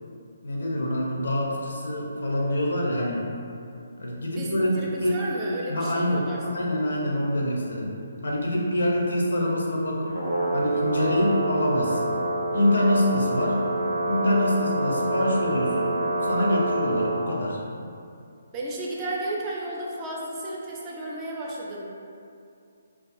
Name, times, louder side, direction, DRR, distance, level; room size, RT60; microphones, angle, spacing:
voice 1, 0.4-3.2 4.0-5.2 5.7-6.2 6.5-7.9 8.2-10.2 10.5-12.1 12.5-13.6 14.1-15.9 16.2-17.6, left 1 dB, 75° left, -3 dB, 0.5 m, -25 dB
voice 2, 4.8-6.8 18.5-21.9, right 1 dB, 25° right, -4 dB, 0.4 m, -33 dB
Brass instrument, 10.1-17.2, right 2 dB, 90° right, 0.5 m, -27 dB
2.3 x 2.3 x 2.5 m, 2.5 s
figure-of-eight pair, 145°, 0 cm